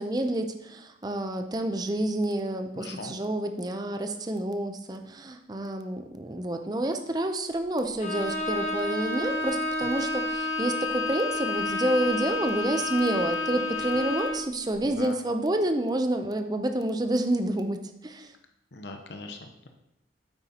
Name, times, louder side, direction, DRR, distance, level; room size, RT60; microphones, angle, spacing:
voice 1, 0.0-18.3, right 1 dB, 20° right, 7 dB, 0.6 m, -29 dB
voice 2, 2.8-3.2 14.8-15.2 18.7-19.7, left 2 dB, 65° left, 5 dB, 0.8 m, -40 dB
Bowed string instrument, 8.0-14.5, left 2 dB, 40° left, 1.1 m, -30 dB
9.0 x 8.5 x 2.9 m, 0.83 s
head